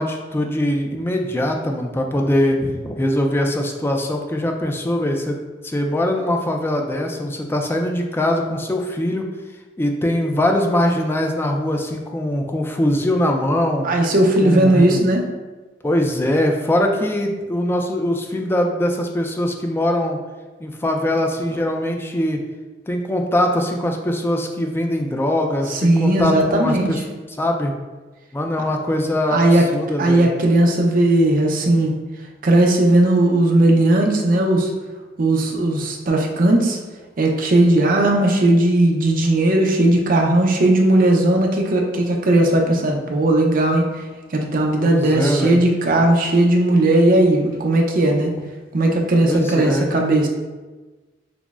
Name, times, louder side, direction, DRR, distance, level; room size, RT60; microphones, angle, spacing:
voice 1, 0.0-5.4 5.6-9.2 9.8-13.9 14.4-15.0 15.8-20.2 20.6-22.4 22.9-27.0 27.4-27.7 28.3-30.3 44.8-45.6 45.9-46.0 49.2-49.9, left 1 dB, 10° left, 2 dB, 0.3 m, -22 dB
voice 2, 13.8-15.2 25.7-27.0 29.3-29.6 30.0-31.9 32.4-34.7 35.2-36.8 37.2-43.8 44.3-48.3 48.7-50.3, right 1 dB, 50° right, 1 dB, 0.5 m, -17 dB
6.0 x 2.0 x 2.3 m, 1.2 s
head